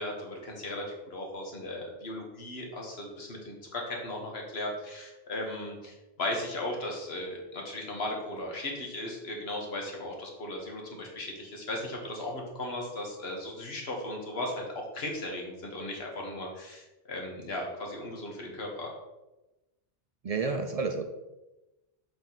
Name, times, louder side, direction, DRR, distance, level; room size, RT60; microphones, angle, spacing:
voice 1, 0.0-14.6 14.9-18.9, left 1 dB, 70° left, 0 dB, 1.6 m, -37 dB
voice 2, 20.2-21.0, right 4 dB, 50° right, 5 dB, 0.5 m, -30 dB
6.7 x 4.5 x 4.0 m, 1.0 s
omnidirectional pair, 1.1 m